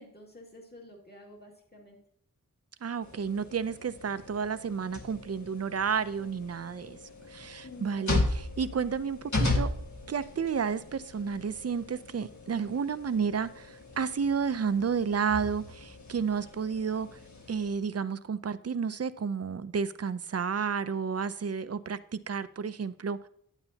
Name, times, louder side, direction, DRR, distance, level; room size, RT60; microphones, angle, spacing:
voice 1, 0.0-2.0 7.6-8.1, left 1 dB, 30° left, 2.2 m, -50 dB
voice 2, 2.8-7.0 7.3-9.7 10.1-17.2 17.5-23.3, right 6 dB, 50° right, 0.5 m, -31 dB
sound 1, 3.0-17.7, left 2 dB, 60° left, 1.6 m, -36 dB
9.8 x 8.9 x 2.8 m
wide cardioid pair, 70°, 33 cm